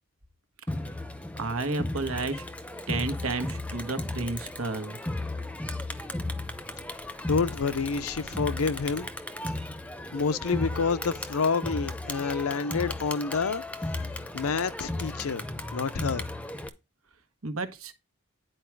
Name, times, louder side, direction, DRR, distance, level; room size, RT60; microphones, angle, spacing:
Crowd, 0.7-16.7, left 1 dB, 5° left, 0.7 m, -35 dB
voice 1, 1.4-2.4 2.9-5.0 17.4-17.9, right 3 dB, 80° right, 1.3 m, -31 dB
voice 2, 7.3-9.1 10.1-13.6 14.3-15.4 15.7-16.3, left 5 dB, 90° left, 0.6 m, -28 dB
10.0 x 4.7 x 4.6 m
head